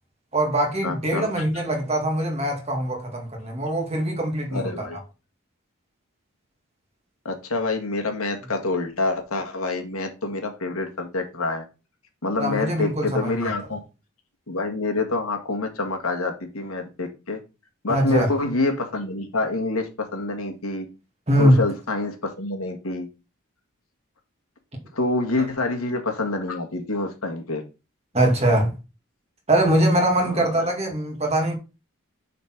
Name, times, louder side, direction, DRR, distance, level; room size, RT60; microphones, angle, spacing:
voice 1, 0.3-4.9 12.4-13.5 17.9-18.3 21.3-21.6 28.1-28.7 29.5-31.5, right 1 dB, 30° right, 2.2 m, -22 dB
voice 2, 0.8-1.4 4.5-5.0 7.2-11.6 12.2-13.8 14.5-17.4 17.8-20.9 21.4-23.1 24.9-27.6 30.2-30.4, left 3 dB, 80° left, 1.8 m, -27 dB
6.8 x 4.3 x 6.0 m
head